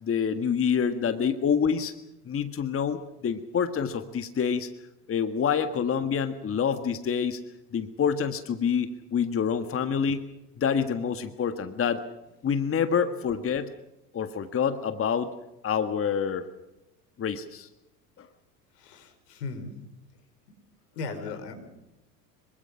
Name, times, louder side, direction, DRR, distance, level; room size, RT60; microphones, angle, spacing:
voice 1, 0.0-1.9 2.3-4.7 5.1-7.4 7.7-10.3 10.6-12.0 12.4-13.7 14.1-15.3 15.6-16.5 17.2-17.7 18.2-18.3, left 7 dB, 25° left, 10 dB, 1.7 m, -27 dB
voice 2, 18.8-19.7 21.0-21.6, left 4 dB, 75° left, 7 dB, 5.3 m, -37 dB
26.5 x 23.5 x 5.8 m, 0.92 s
hypercardioid pair, 80°, 48 cm